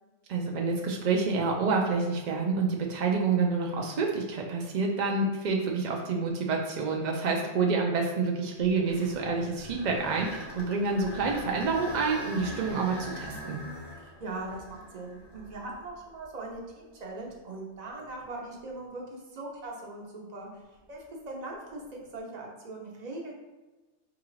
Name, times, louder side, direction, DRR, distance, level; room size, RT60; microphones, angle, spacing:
voice 1, 0.3-13.6, right 4 dB, 80° right, 0 dB, 0.4 m, -28 dB
voice 2, 7.2-7.6 13.9-20.5 20.9-23.3, right 2 dB, 45° right, -1 dB, 0.6 m, -40 dB
sound 1, 8.6-16.6 17.2-17.3 18.1-18.2 21.7-22.1, equal, 30° left, 0.4 m, -42 dB
4.7 x 2.4 x 3.1 m, 1.1 s
omnidirectional pair, 1.3 m